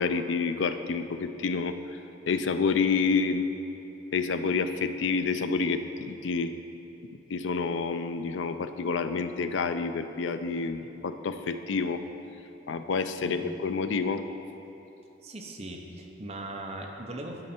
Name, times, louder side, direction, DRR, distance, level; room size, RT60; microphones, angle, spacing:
voice 1, 0.0-1.8 2.3-3.5 4.1-6.5 7.3-12.0 12.7-14.2, left 4 dB, 75° left, 9 dB, 0.4 m, -28 dB
voice 2, 15.2-17.5, right 1 dB, 30° right, 1 dB, 0.7 m, -39 dB
10.5 x 5.1 x 4.3 m, 2.9 s
head